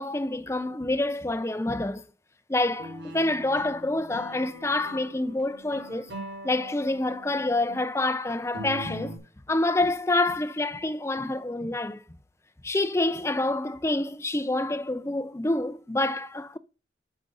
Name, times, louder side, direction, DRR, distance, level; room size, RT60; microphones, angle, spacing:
voice 1, 0.0-2.0 2.5-6.1 6.4-9.1 9.5-12.0 12.6-16.6, left 2 dB, 15° left, 0.6 m, -27 dB
sound 1, 2.8-7.8 8.3-9.2, right 1 dB, 70° right, 3.9 m, -42 dB
8.6 x 6.1 x 5.4 m
head